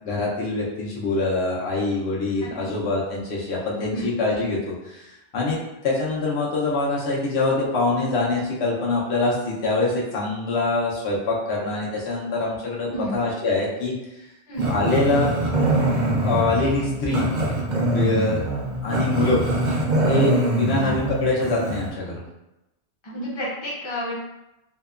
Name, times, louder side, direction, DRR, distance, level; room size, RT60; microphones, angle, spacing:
voice 1, 0.0-5.6 5.8-14.2 14.7-15.3 16.2-17.2 17.9-18.5 18.8-19.4 20.0-22.2, left 3 dB, 85° left, -4 dB, 0.9 m, -24 dB
voice 2, 2.4-2.7 3.9-4.1 12.9-13.1 14.5-14.7 18.1-18.3 20.8-20.9 23.0-24.1, equal, 35° left, -7 dB, 0.5 m, -31 dB
Growling, 14.6-21.9, right 1 dB, 55° right, 0.6 m, -23 dB
2.8 x 2.1 x 2.3 m, 0.94 s
omnidirectional pair, 1.1 m